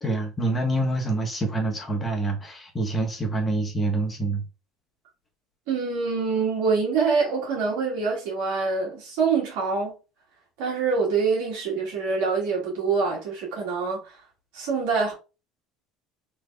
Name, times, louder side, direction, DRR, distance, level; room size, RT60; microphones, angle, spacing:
voice 1, 0.0-4.4, right 2 dB, 20° left, 1.2 m, -26 dB
voice 2, 5.7-9.9 10.6-14.2 14.5-15.1, right 4 dB, 70° right, 1.9 m, -25 dB
3.4 x 3.2 x 2.3 m
hypercardioid pair, 70°, 0 cm